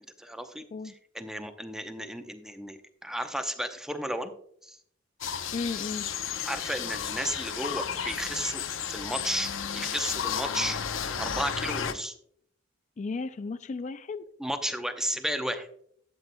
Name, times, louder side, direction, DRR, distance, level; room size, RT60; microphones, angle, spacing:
voice 1, 0.2-0.7 1.1-4.3 4.6-4.8 6.5-8.6 8.9-10.8 11.2-12.1 14.4-15.7, equal, 5° right, 7 dB, 0.7 m, -33 dB
sound 1, 5.2-11.9, left 7 dB, 75° left, 0.7 m, -33 dB
voice 2, 5.5-6.1 13.0-14.3, left 4 dB, 35° left, 11 dB, 0.4 m, -34 dB
12.0 x 8.3 x 2.2 m, 0.65 s
head